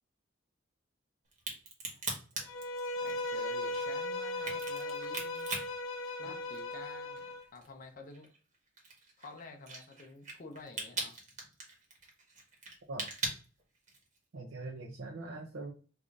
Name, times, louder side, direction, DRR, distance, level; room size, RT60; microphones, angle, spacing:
Crack, 1.3-6.8 7.2-14.2, right 3 dB, 40° right, 1.2 m, -41 dB
Bowed string instrument, 2.5-7.4, left 2 dB, 85° left, 0.5 m, -37 dB
voice 1, 3.0-5.5 6.2-8.3 9.2-11.1, left 3 dB, 45° left, 4 dB, 0.6 m, -50 dB
voice 2, 14.3-15.7, right 2 dB, 75° right, 0 dB, 0.6 m, -42 dB
4.8 x 2.5 x 2.5 m, 0.37 s
head